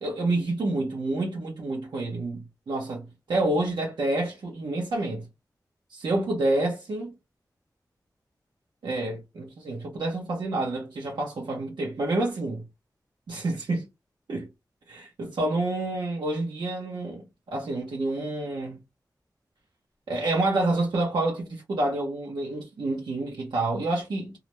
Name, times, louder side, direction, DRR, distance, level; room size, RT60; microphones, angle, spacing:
voice 1, 0.0-5.2 5.9-7.1 8.8-12.6 13.3-13.9 14.3-14.5 14.9-18.8 20.1-24.4, right 2 dB, 85° right, 0.6 m, -28 dB
2.3 x 2.0 x 2.9 m
cardioid pair, 55°, 7 cm